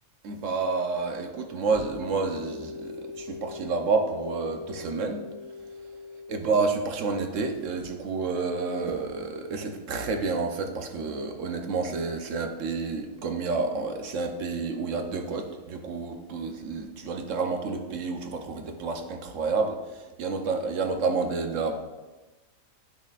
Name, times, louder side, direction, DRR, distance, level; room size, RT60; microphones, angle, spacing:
voice 1, 0.2-5.2 6.3-21.8, right 4 dB, 65° right, 4 dB, 1.1 m, -29 dB
sound 1, 1.4-6.4, left 4 dB, 85° left, 1.1 m, -41 dB
9.8 x 6.4 x 2.4 m, 1.2 s
omnidirectional pair, 1.5 m